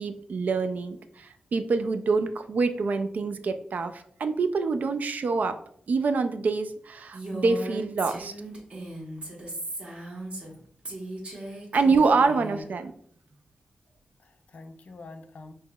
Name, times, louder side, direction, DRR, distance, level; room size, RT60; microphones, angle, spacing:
voice 1, 0.0-5.6 5.9-8.3 11.7-12.9, right 4 dB, 65° right, 9 dB, 0.4 m, -26 dB
Female speech woman speaking, 7.1-10.5 10.8-12.6, right 1 dB, 45° right, 1.2 m, -37 dB
voice 2, 11.3-11.6 12.2-12.5 14.2-15.5, left 3 dB, 60° left, 7 dB, 0.4 m, -46 dB
5.5 x 3.0 x 2.2 m, 0.62 s
wide cardioid pair, 120°, 3 cm